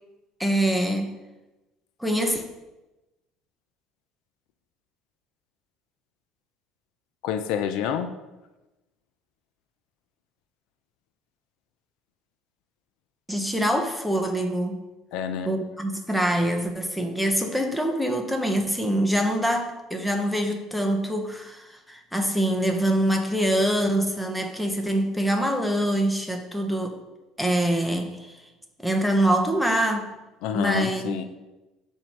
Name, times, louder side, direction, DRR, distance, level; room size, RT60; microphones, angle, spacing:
voice 1, 0.4-1.1 2.0-2.4 13.3-14.8 15.4-27.0 27.4-28.3 28.8-30.1 30.5-31.2, right 1 dB, ahead, 3 dB, 0.6 m, -24 dB
voice 2, 7.2-8.1 15.1-15.5 30.4-31.2, left 9 dB, 70° left, 9 dB, 0.5 m, -28 dB
7.6 x 2.7 x 5.9 m, 1.1 s
cardioid pair, 155°, 0 cm